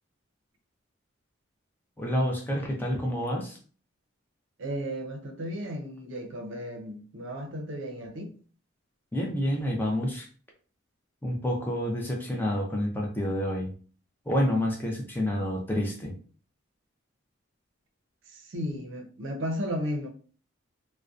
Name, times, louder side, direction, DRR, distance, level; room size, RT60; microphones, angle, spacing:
voice 1, 2.0-3.6 9.1-10.3 11.2-13.7 14.3-16.2, equal, 10° left, 0.5 m, -28 dB
voice 2, 4.6-8.4 18.3-20.1, equal, 70° right, 0.5 m, -34 dB
2.6 x 2.1 x 2.3 m
head